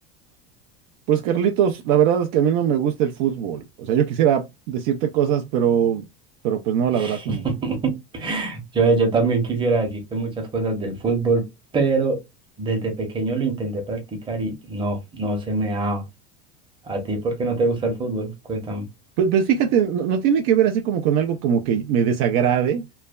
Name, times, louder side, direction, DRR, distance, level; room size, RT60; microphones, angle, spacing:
voice 1, 1.1-6.0 6.4-7.4 19.2-22.9, right 8 dB, 55° right, 0.4 m, -21 dB
voice 2, 6.9-11.4 11.7-12.2 12.6-16.0 16.8-18.9, right 3 dB, 15° right, 0.8 m, -24 dB
3.1 x 2.2 x 2.2 m
supercardioid pair, 150°, 29 cm